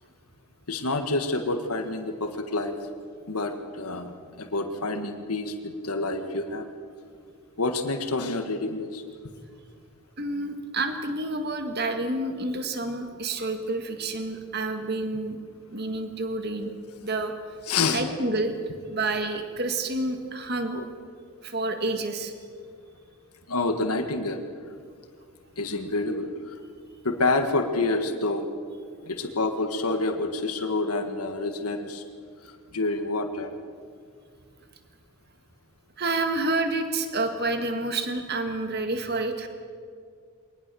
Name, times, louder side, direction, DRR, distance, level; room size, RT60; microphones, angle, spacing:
voice 1, 0.7-2.7 3.3-4.1 4.4-6.7 7.6-9.0 17.7-18.0 20.7-20.8 23.5-24.4 25.6-26.3 27.0-28.5 29.0-32.0 32.4-33.5, left 3 dB, 90° left, 6 dB, 1.6 m, -28 dB
voice 2, 10.2-15.4 15.7-16.7 17.0-17.3 17.9-18.5 18.9-20.8 21.4-22.3 36.0-39.5, right 2 dB, 45° right, 6 dB, 1.9 m, -29 dB
22.0 x 19.5 x 7.0 m, 2.2 s
head